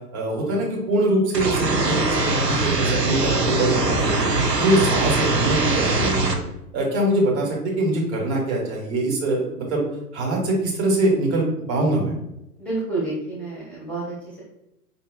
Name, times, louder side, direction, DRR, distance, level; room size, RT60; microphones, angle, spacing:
voice 1, 0.1-4.3 4.6-6.4 6.7-9.8 10.1-12.1, right 1 dB, 45° right, -2 dB, 1.4 m, -23 dB
sound 1, 1.3-6.3, right 2 dB, 85° right, 0.7 m, -22 dB
voice 2, 12.6-14.4, right 2 dB, 5° left, -7 dB, 0.7 m, -29 dB
4.5 x 2.7 x 2.3 m, 0.86 s
figure-of-eight pair, 105°, 48 cm